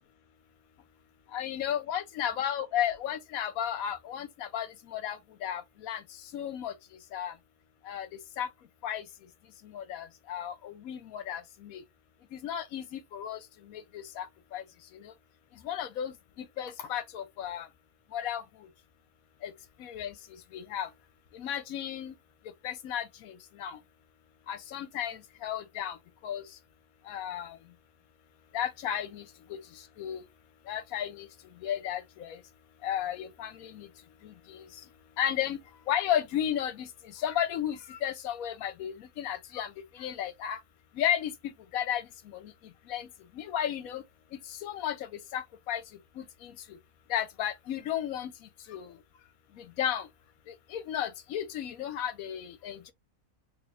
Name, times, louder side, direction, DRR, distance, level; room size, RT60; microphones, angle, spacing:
voice 1, 1.3-6.0 6.3-6.7 7.1-7.3 7.9-8.1 8.4-8.5 8.8-9.0 9.6-11.8 12.3-13.4 13.7-14.6 14.9-15.1 15.6-17.7 18.1-18.4 19.4-19.5 19.8-20.1 20.5-20.9 21.3-22.1 22.6-23.8 24.5-26.0 26.2-26.4 27.1-27.6 28.5-29.2 29.5-29.6 30.0-30.2 30.7-31.3 31.6-32.4 32.8-33.9 34.2-34.6 35.2-35.6 35.9-36.9 37.1-40.6 41.0-42.5 42.9-43.1 43.3-44.0 44.6-45.8 46.2-46.5 47.1-48.3 48.7-48.9 49.6-50.1 50.7-52.9, left 10 dB, 75° left, 1.1 m, -34 dB
3.2 x 3.0 x 2.4 m
omnidirectional pair, 1.6 m